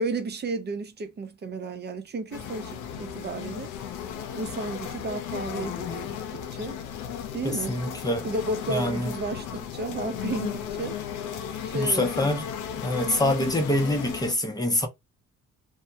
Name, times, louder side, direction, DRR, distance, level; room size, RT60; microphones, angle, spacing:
voice 1, 0.0-3.7 4.3-6.8 7.3-7.8 8.2-11.0 11.6-12.3, right 2 dB, 35° right, 0.6 m, -33 dB
sound 1, 2.3-14.3, left 9 dB, 90° left, 0.5 m, -35 dB
voice 2, 7.4-8.3 8.7-9.1 11.7-12.5 12.7-14.9, left 1 dB, 15° left, 0.6 m, -25 dB
2.2 x 2.0 x 2.7 m
cardioid pair, 90°, 30 cm